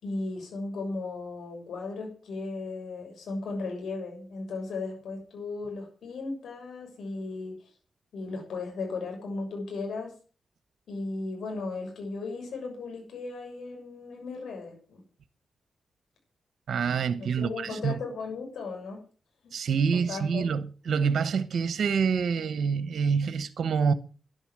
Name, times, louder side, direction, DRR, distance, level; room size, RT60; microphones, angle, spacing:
voice 1, 0.0-7.5 8.1-10.1 10.9-15.0 17.2-19.0 20.1-20.5, left 3 dB, 85° left, 6.8 m, -36 dB
voice 2, 16.7-18.0 19.5-23.9, right 6 dB, 75° right, 1.0 m, -27 dB
11.5 x 11.0 x 7.5 m
cardioid pair, 65°, 0 cm